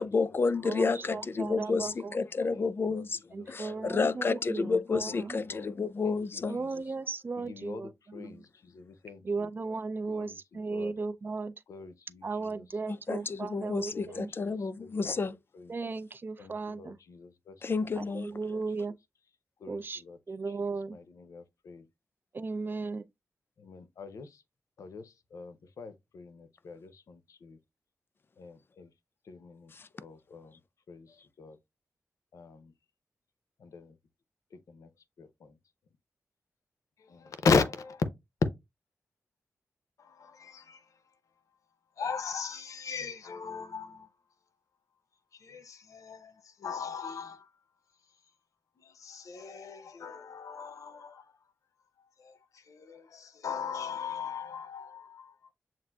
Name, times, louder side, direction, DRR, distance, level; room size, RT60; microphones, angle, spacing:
voice 1, 0.0-3.2 3.5-6.6 12.9-15.3 17.6-18.3 29.7-29.9, left 4 dB, 45° left, 0.4 m, -30 dB
voice 2, 0.6-2.2 3.3-5.3 6.5-8.4 9.2-11.5 12.2-14.3 15.7-17.0 18.0-18.9 19.7-21.0 22.3-23.0, right 4 dB, 40° right, 0.4 m, -36 dB
voice 3, 1.4-1.9 2.5-2.6 2.9-3.1 3.4-4.0 5.1-5.2 5.4-5.7 6.0-6.7 7.4-9.5 10.1-10.4 10.7-10.9 11.7-12.6 13.6-15.2 15.6-15.7 16.4-17.5 17.8-17.9 18.5-18.6 19.6-20.2 20.9-21.9 23.6-24.3 24.8-27.6 28.4-28.9 29.3-29.7 30.0-30.5 30.9-31.1 31.4-31.6 32.3-32.7 33.6-33.9 34.7-34.9 35.2-35.6 37.1-38.1 40.0-40.8 42.0-44.1 45.4-47.5 48.8-51.3 52.2-55.5, left 5 dB, 85° left, 0.6 m, -38 dB
7.3 x 2.5 x 2.2 m
wide cardioid pair, 85°, 5 cm